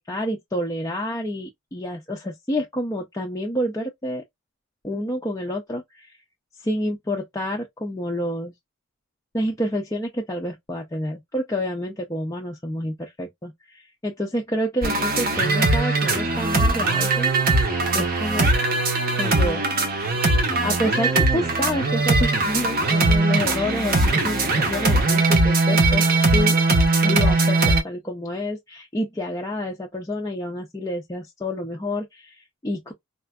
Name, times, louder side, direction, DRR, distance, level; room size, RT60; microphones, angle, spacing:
voice 1, 0.1-4.2 4.8-6.2 6.6-8.5 9.3-17.3 17.9-18.5 19.1-19.6 20.3-26.1 26.3-26.6 27.0-32.9, left 1 dB, 15° left, 0.4 m, -28 dB
sound 1, 14.8-27.8, right 2 dB, 40° right, 0.7 m, -20 dB
4.1 x 2.4 x 2.3 m
head